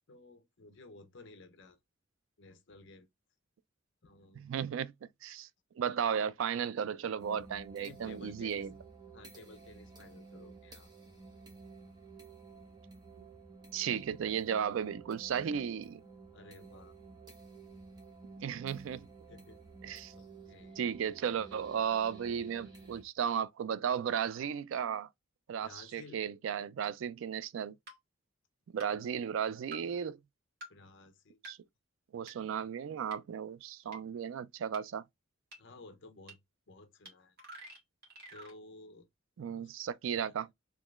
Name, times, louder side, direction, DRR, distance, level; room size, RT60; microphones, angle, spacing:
voice 1, 0.1-1.8 2.4-3.1 4.0-4.4 6.0-6.3 7.8-8.7 9.1-10.9 16.3-17.0 19.3-19.6 20.1-20.8 25.6-26.2 30.7-31.4 35.6-36.4 36.7-37.3 38.3-39.1 39.5-39.7 40.1-40.3, left 3 dB, 60° left, 0.7 m, -54 dB
voice 2, 4.3-4.9 5.2-5.5 5.8-8.7 13.2-13.3 13.7-16.0 18.4-19.1 19.8-20.1 20.8-25.1 25.5-27.7 28.7-30.2 31.4-31.6 32.1-35.0 39.4-40.5, right 8 dB, 70° right, 0.3 m, -35 dB
sound 1, 7.2-23.0, right 4 dB, 20° right, 1.0 m, -53 dB
sound 2, 26.8-26.9 27.9-28.0 28.8-28.9 29.7-29.8 30.6-30.7 31.4-31.5 32.3-32.4 33.1-33.2 33.9-34.0 34.7-34.8 35.5-35.6 36.3-36.4 37.1-37.2 37.4-38.6, right 1 dB, 50° right, 1.6 m, -48 dB
3.6 x 3.1 x 2.4 m
head